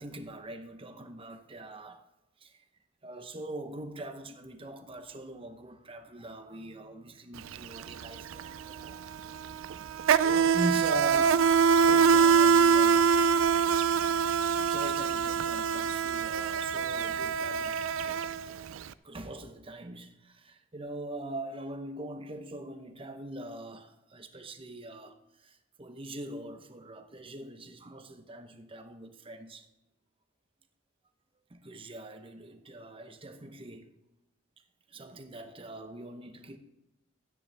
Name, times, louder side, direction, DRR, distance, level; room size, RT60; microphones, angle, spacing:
voice 1, 0.0-2.0 2.4-2.6 3.0-9.0 10.2-13.1 14.6-17.8 18.7-29.7 31.5-33.9 34.9-36.6, right 1 dB, 25° right, 0.9 m, -42 dB
Insect, 7.4-7.6 7.8-18.8, right 6 dB, 70° right, 0.4 m, -24 dB
12.5 x 9.6 x 3.4 m
head